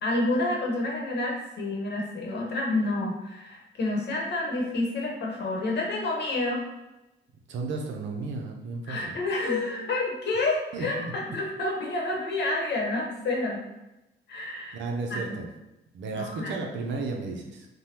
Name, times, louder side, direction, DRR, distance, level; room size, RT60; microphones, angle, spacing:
voice 1, 0.0-6.6 8.9-11.1 11.3-13.6 14.3-14.8 15.1-15.4 16.1-16.5, left 2 dB, 60° left, -2 dB, 0.9 m, -29 dB
voice 2, 7.5-9.2 10.7-11.4 14.7-15.5 15.9-17.7, right 3 dB, 70° right, 2 dB, 0.6 m, -34 dB
3.2 x 2.2 x 2.8 m, 0.96 s
cardioid pair, 90°, 20 cm